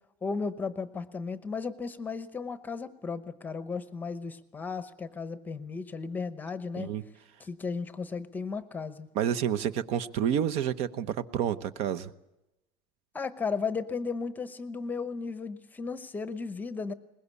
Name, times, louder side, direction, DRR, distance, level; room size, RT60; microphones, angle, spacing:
voice 1, 0.2-6.9 7.4-9.1 13.1-16.9, left 4 dB, 10° left, 13 dB, 0.9 m, -35 dB
voice 2, 9.1-12.1, right 9 dB, 45° right, 14 dB, 1.0 m, -29 dB
22.5 x 20.5 x 8.4 m, 0.94 s
cardioid pair, 175°, 14 cm